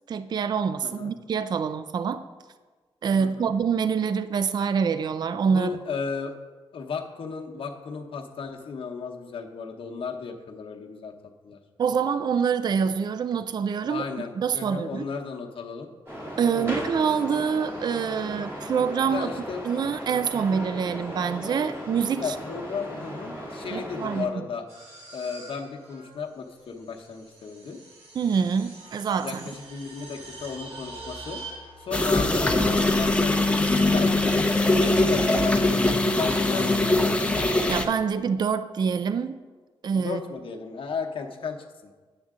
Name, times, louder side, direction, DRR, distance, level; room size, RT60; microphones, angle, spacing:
voice 1, 0.1-2.2 3.0-5.7 11.8-14.0 14.4-15.1 16.4-19.3 19.6-22.4 23.7-24.5 28.2-29.4 37.7-39.4 39.8-40.2, right 6 dB, 45° right, 12 dB, 0.3 m, -26 dB
voice 2, 0.8-1.1 3.2-3.5 5.5-6.4 6.7-11.6 13.9-15.9 16.5-16.8 19.1-19.6 22.2-24.6 25.1-27.8 29.2-31.4 31.8-33.5 33.9-34.4 34.7-37.6 39.9-41.6 41.8-41.9, left 5 dB, 65° left, 2 dB, 0.9 m, -35 dB
sound 1, 16.1-24.2, equal, 25° right, 2.2 m, -37 dB
sound 2, 24.7-33.2, right 3 dB, 85° right, 2.3 m, -43 dB
sound 3, 31.9-37.8, left 2 dB, 10° left, 0.7 m, -22 dB
9.4 x 7.5 x 3.6 m, 1.4 s
wide cardioid pair, 115°, 10 cm